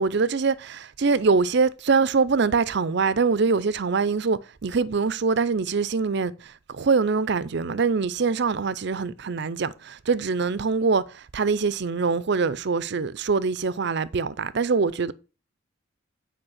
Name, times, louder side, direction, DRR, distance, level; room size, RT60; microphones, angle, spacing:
voice 1, 0.0-15.1, right 4 dB, 55° right, 0.5 m, -24 dB
8.8 x 5.1 x 6.4 m
head